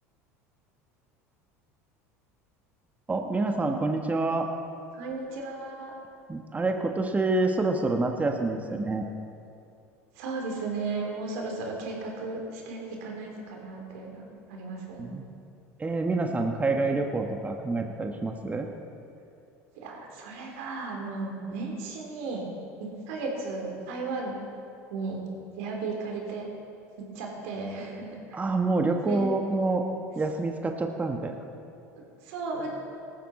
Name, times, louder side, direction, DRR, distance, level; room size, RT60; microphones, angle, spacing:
voice 1, 3.1-4.5 6.3-9.0 15.0-15.2 15.8-18.7 28.3-29.8 30.1-31.3, right 3 dB, 20° right, 4 dB, 1.4 m, -27 dB
voice 2, 4.9-5.9 10.2-15.1 19.8-22.5 22.8-24.4 24.9-25.2 25.5-26.5 27.0-28.4 29.0-29.3 32.2-32.7, right 3 dB, 70° right, 0 dB, 3.6 m, -35 dB
18.0 x 14.0 x 4.3 m, 2.5 s
hypercardioid pair, 80°, 8 cm